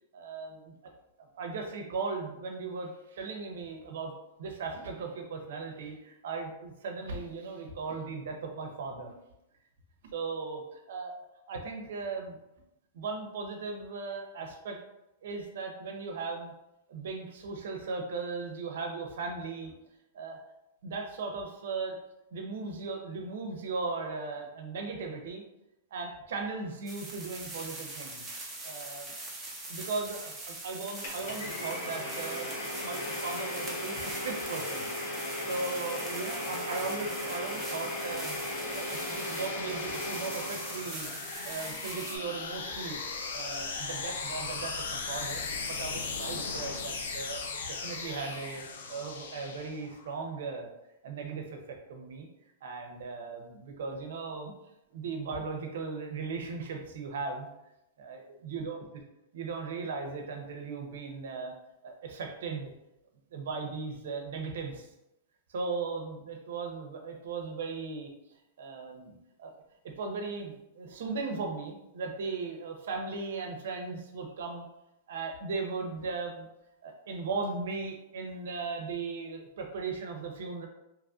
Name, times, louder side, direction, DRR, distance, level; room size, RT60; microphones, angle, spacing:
voice 1, 0.1-0.9 1.2-4.1 4.4-9.1 10.1-11.1 11.5-12.4 12.9-14.8 15.2-16.5 16.9-19.7 20.1-20.4 20.8-22.0 22.3-25.4 25.9-28.3 28.6-29.1 29.7-32.5 32.8-34.9 35.5-41.1 41.4-43.0 43.3-45.4 45.6-48.6 48.9-50.7 51.0-52.3 52.6-54.5 54.9-57.5 58.0-58.8 59.3-61.5 61.8-62.7 63.3-64.9 65.5-68.1 68.6-69.5 69.8-74.7 75.1-76.5 76.8-80.7, right 4 dB, 75° right, 3 dB, 0.6 m, -37 dB
sound 1, 26.9-42.2, right 2 dB, 10° right, 0.6 m, -42 dB
Domestic sounds home sounds, 31.0-41.0, left 1 dB, 65° left, 0.9 m, -37 dB
sound 2, 36.8-50.1, left 4 dB, 90° left, 0.4 m, -39 dB
2.9 x 2.5 x 2.4 m, 0.89 s
supercardioid pair, 155°, 0 cm